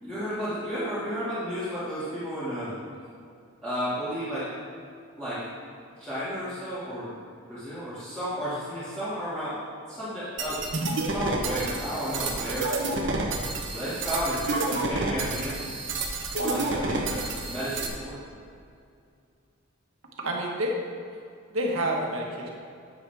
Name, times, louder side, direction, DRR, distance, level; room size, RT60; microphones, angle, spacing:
voice 1, 0.0-2.7 3.6-4.5 5.2-5.4 6.0-7.1 7.5-9.6 9.9-10.6 11.0-12.7 13.7-15.6 16.4-18.2, equal, 5° left, -15 dB, 2.2 m, -32 dB
sound 1, 10.4-17.9, right 2 dB, 60° right, 1.0 m, -29 dB
voice 2, 20.2-20.7 21.5-22.5, right 1 dB, 80° right, 0 dB, 1.5 m, -28 dB
11.0 x 7.6 x 3.5 m, 2.4 s
head